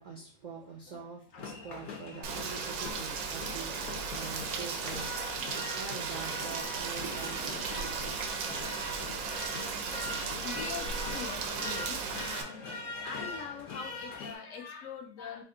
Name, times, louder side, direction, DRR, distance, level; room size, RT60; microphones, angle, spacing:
voice 1, 0.0-8.6, right 5 dB, 65° right, 0.4 m, -45 dB
sound 1, 1.4-14.4, left 2 dB, 85° left, 1.4 m, -41 dB
Rain, 2.2-12.4, right 6 dB, 80° right, 1.0 m, -36 dB
voice 2, 5.9-6.4 7.4-7.8 9.4-15.4, left 6 dB, 65° left, 1.0 m, -44 dB
3.4 x 2.6 x 3.8 m
omnidirectional pair, 1.5 m